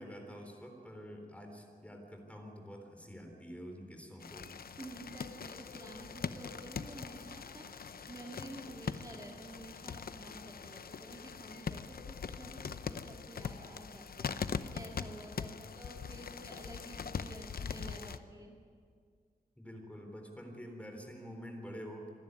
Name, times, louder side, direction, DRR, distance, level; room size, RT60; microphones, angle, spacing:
voice 1, 0.0-4.5 15.3-15.8 19.6-22.1, equal, 10° left, 3 dB, 3.8 m, -47 dB
sound 1, 4.2-18.2, left 6 dB, 85° left, 0.7 m, -42 dB
voice 2, 4.8-18.6, right 1 dB, 25° right, -1 dB, 2.3 m, -50 dB
26.0 x 11.0 x 9.5 m, 2.1 s
wide cardioid pair, 105°, 15 cm